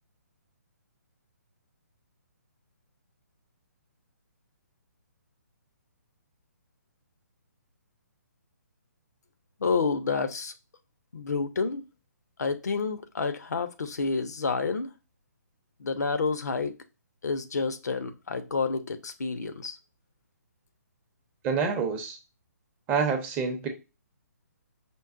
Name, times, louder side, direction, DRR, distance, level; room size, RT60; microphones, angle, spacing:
voice 1, 9.6-10.5 11.1-11.8 12.4-14.9 15.8-16.7 17.2-19.8, left 4 dB, 70° left, 0.5 m, -29 dB
voice 2, 21.4-22.2 22.9-23.7, right 5 dB, 15° right, 0.6 m, -27 dB
5.2 x 2.1 x 2.4 m
figure-of-eight pair, 135°, 9 cm